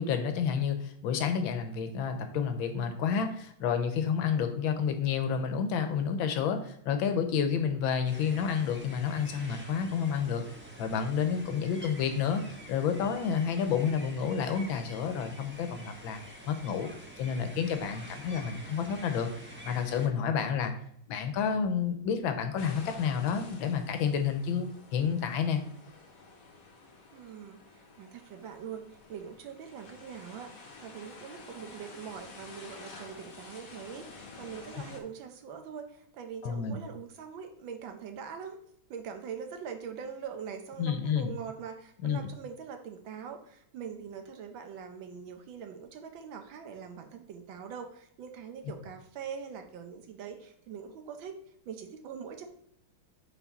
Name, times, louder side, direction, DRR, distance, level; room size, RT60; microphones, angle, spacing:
voice 1, 0.0-10.4 10.8-12.4 12.7-16.2 16.5-16.9 17.2-19.3 19.6-20.7 21.1-25.6 36.4-36.8 40.8-41.3 42.0-42.2, left 7 dB, 80° left, 7 dB, 1.6 m, -30 dB
sound 1, 8.0-20.1, equal, 10° right, 0.8 m, -48 dB
sound 2, 22.6-35.0, left 3 dB, 50° left, 1.3 m, -50 dB
voice 2, 27.1-28.8 29.1-38.6 38.9-51.4 51.7-52.5, right 7 dB, 75° right, 6 dB, 1.5 m, -43 dB
5.8 x 4.6 x 4.1 m, 0.70 s
omnidirectional pair, 2.2 m